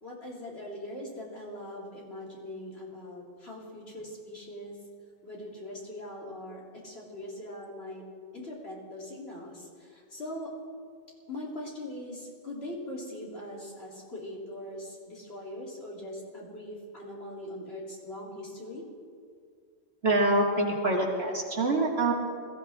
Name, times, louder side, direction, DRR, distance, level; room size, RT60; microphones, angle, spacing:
voice 1, 0.0-4.8 5.2-8.0 8.3-10.5 11.3-18.8, left 1 dB, 65° left, -4 dB, 3.5 m, -41 dB
voice 2, 20.0-22.1, right 2 dB, 65° right, 0 dB, 2.3 m, -25 dB
21.5 x 15.0 x 3.6 m, 2.2 s
omnidirectional pair, 1.1 m